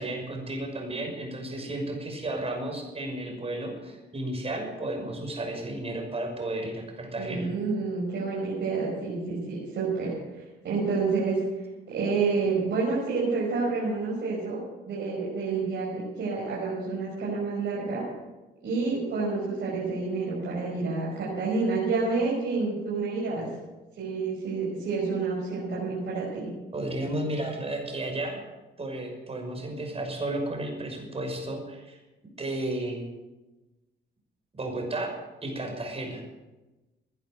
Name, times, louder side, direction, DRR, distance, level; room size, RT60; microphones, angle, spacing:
voice 1, 0.0-7.5 26.7-28.4 28.8-32.0 32.4-33.0 34.5-35.1 35.4-36.2, right 1 dB, 30° right, 2 dB, 6.0 m, -33 dB
voice 2, 7.2-10.1 10.6-11.4 11.9-14.6 14.9-18.0 18.6-23.5 24.0-26.5, right 4 dB, 65° right, -6 dB, 5.6 m, -29 dB
17.0 x 10.5 x 6.7 m, 1.1 s
cardioid pair, 90°, 20 cm